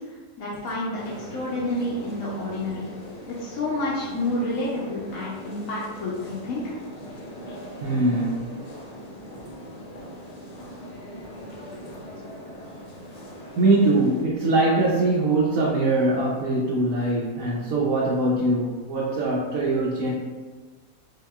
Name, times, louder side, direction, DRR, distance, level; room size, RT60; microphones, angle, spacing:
voice 1, 0.0-2.8 3.3-6.7, left 1 dB, 75° left, -6 dB, 1.1 m, -29 dB
sound 1, 1.0-14.2, equal, 90° left, 0.3 m, -41 dB
voice 2, 7.8-8.5 13.6-20.1, right 2 dB, 75° right, -5 dB, 1.0 m, -22 dB
4.7 x 2.8 x 2.3 m, 1.3 s
omnidirectional pair, 1.5 m